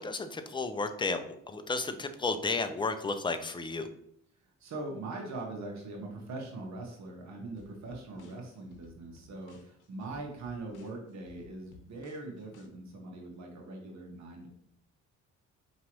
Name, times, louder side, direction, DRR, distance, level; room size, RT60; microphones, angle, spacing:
voice 1, 0.0-3.9, left 3 dB, 15° left, 9 dB, 0.5 m, -33 dB
voice 2, 4.4-14.5, right 2 dB, 65° right, 0 dB, 1.2 m, -42 dB
sound 1, 7.6-12.7, left 4 dB, 80° left, 0.8 m, -58 dB
4.9 x 3.0 x 3.0 m, 0.72 s
cardioid pair, 90°, 30 cm